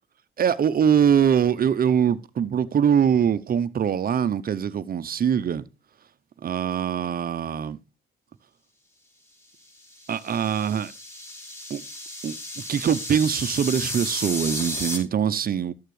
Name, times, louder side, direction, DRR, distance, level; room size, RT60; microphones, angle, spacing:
voice 1, 0.4-5.7 6.4-7.8 10.1-10.9 11.7-11.8 12.2-12.3 12.7-15.7, right 8 dB, 45° right, 0.7 m, -23 dB
sound 1, 9.8-15.0, left 1 dB, 15° left, 5.1 m, -34 dB
12.5 x 9.0 x 3.2 m
cardioid pair, 90°, 20 cm